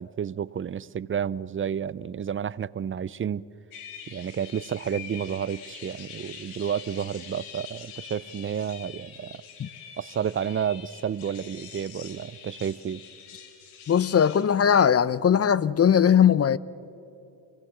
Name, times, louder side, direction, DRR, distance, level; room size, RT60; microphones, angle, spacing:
voice 1, 0.0-3.5 4.1-9.4 10.0-13.0, right 8 dB, 25° right, 0.5 m, -31 dB
sound 1, 3.7-14.4, left 7 dB, 80° left, 3.2 m, -45 dB
voice 2, 13.9-16.6, left 8 dB, 30° left, 0.6 m, -19 dB
26.5 x 18.5 x 7.8 m
supercardioid pair, 70°, 49 cm